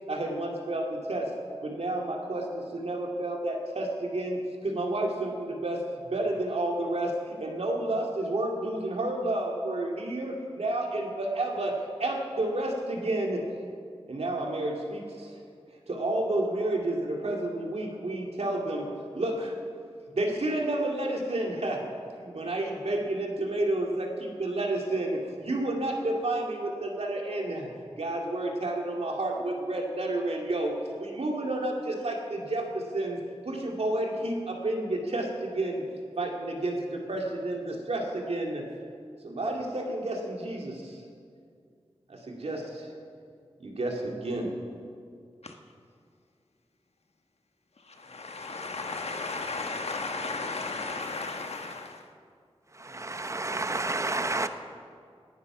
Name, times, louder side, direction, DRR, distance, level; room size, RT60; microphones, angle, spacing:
voice 1, 0.1-1.3 1.6-13.4 14.1-15.4 15.9-18.9 19.1-19.6 20.1-21.8 22.2-27.7 28.0-33.2 33.5-35.8 36.2-38.7 39.2-41.0 42.1-42.9 43.6-44.5, right 1 dB, 75° right, 1 dB, 2.3 m, -30 dB
voice 2, 48.0-52.0, left 3 dB, 80° left, 4 dB, 1.3 m, -34 dB
voice 3, 52.7-54.5, right 2 dB, 30° right, 9 dB, 0.8 m, -30 dB
18.0 x 9.8 x 6.0 m, 2.2 s
wide cardioid pair, 70°, 11 cm